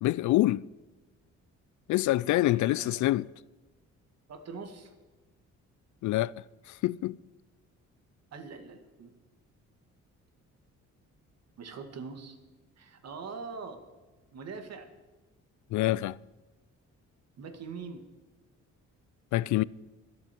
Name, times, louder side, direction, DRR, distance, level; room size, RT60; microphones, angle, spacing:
voice 1, 0.0-0.6 1.9-3.3 6.0-6.3 6.8-7.2 15.7-16.2 19.3-19.6, left 16 dB, 75° left, 0.4 m, -25 dB
voice 2, 2.2-3.2 4.3-4.9 8.3-9.1 11.6-12.4 12.8-13.8 14.3-14.9 17.4-18.1, right 5 dB, 60° right, 2.1 m, -43 dB
23.5 x 8.6 x 4.5 m
cardioid pair, 90°, 30 cm